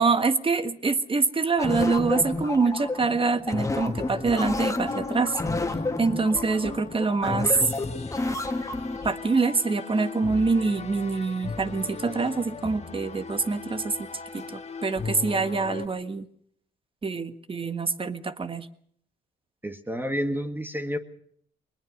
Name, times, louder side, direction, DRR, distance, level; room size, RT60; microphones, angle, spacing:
voice 1, 0.0-5.4 6.0-7.5 9.0-14.1 14.3-16.3 17.0-18.7, right 4 dB, 25° right, 11 dB, 1.6 m, -25 dB
sound 1, 1.6-9.1, left 2 dB, 15° left, 1.8 m, -30 dB
sound 2, 3.8-15.9, left 4 dB, 35° left, 2.1 m, -38 dB
voice 2, 19.6-21.0, equal, 10° right, 7 dB, 1.9 m, -29 dB
22.0 x 20.0 x 6.6 m, 0.64 s
cardioid pair, 90°, 20 cm